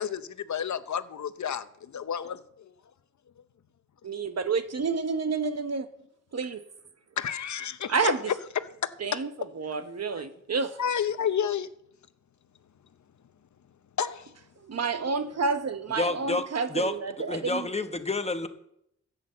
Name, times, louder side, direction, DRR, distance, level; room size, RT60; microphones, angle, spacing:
voice 1, 0.0-2.4 7.2-8.7 9.1-9.2 10.8-11.7 14.0-14.3, left 8 dB, 70° left, 0.7 m, -30 dB
voice 2, 4.0-5.9 6.3-6.6 7.9-8.3 9.0-10.8 14.6-17.7, right 4 dB, 60° right, 1.1 m, -29 dB
voice 3, 16.0-16.9 17.3-18.5, left 2 dB, 20° left, 1.0 m, -29 dB
11.0 x 8.3 x 7.8 m
wide cardioid pair, 125°, 29 cm